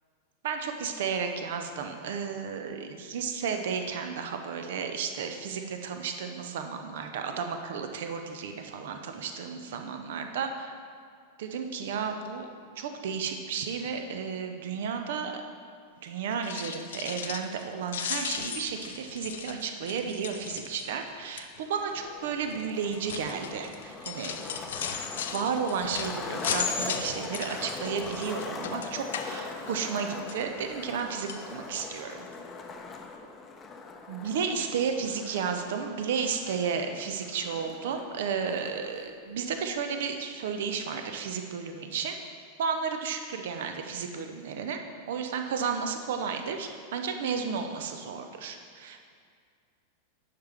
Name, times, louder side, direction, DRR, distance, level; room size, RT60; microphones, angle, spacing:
voice 1, 0.4-10.7 11.4-12.5 12.8-15.3 16.0-24.7 25.1-32.3 34.1-42.2 42.6-44.8 45.1-49.1, right 6 dB, 55° right, 6 dB, 0.7 m, -33 dB
sound 1, 16.3-17.6 17.9-21.0 21.4-21.7 22.4-30.0 30.3-31.0 31.3-31.4 32.0-32.1 32.3-32.4, left 7 dB, 60° left, 0.5 m, -36 dB
Skateboard, 21.9-38.9, left 4 dB, 20° left, 0.6 m, -41 dB
10.0 x 5.8 x 3.4 m, 2.2 s
figure-of-eight pair, 90°, 0 cm